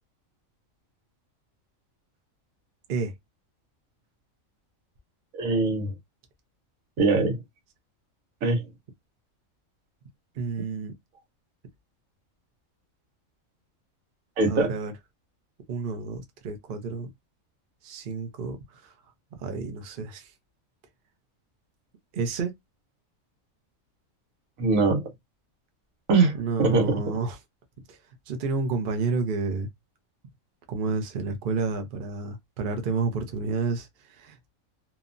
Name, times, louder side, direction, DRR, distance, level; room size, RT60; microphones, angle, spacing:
voice 1, 5.3-5.9 7.0-7.4 8.4-8.6 14.4-14.7 24.6-25.1 26.1-26.9, right 3 dB, 85° right, 1.3 m, -22 dB
voice 2, 10.4-10.9 14.5-14.9 15.7-17.1 17.8-18.9 19.4-20.3 22.1-22.5 26.3-27.4 27.9-28.0 28.3-29.7 30.7-34.5, right 4 dB, 50° right, 0.7 m, -30 dB
2.8 x 2.1 x 2.5 m
omnidirectional pair, 1.4 m